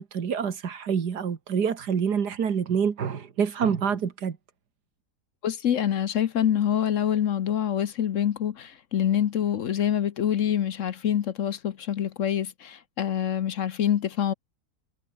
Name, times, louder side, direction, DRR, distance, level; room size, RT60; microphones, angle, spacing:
voice 1, 0.0-4.4, right 7 dB, 85° right, 2.3 m, -27 dB
voice 2, 5.4-14.3, left 9 dB, 60° left, 1.1 m, -26 dB
omnidirectional pair, 1.7 m